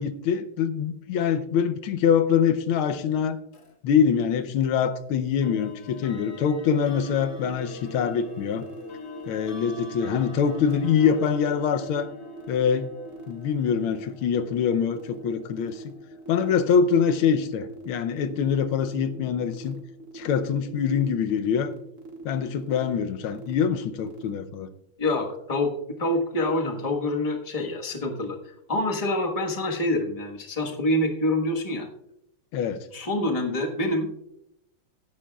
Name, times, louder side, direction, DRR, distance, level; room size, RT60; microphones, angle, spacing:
voice 1, 0.0-3.4 3.8-8.7 9.3-12.1 12.5-12.9 13.3-15.9 16.3-19.8 20.1-21.7 22.2-24.7 32.5-32.9, left 7 dB, 90° left, 9 dB, 1.6 m, -24 dB
sound 1, 3.5-3.7 5.4-18.2, left 1 dB, 50° left, 2.1 m, -44 dB
sound 2, 6.6-24.3, right 2 dB, 40° right, 1.9 m, -42 dB
voice 2, 25.0-25.7 26.0-31.9 32.9-34.1, left 1 dB, 20° left, 1 dB, 1.2 m, -26 dB
16.5 x 10.0 x 2.3 m, 0.78 s
omnidirectional pair, 2.2 m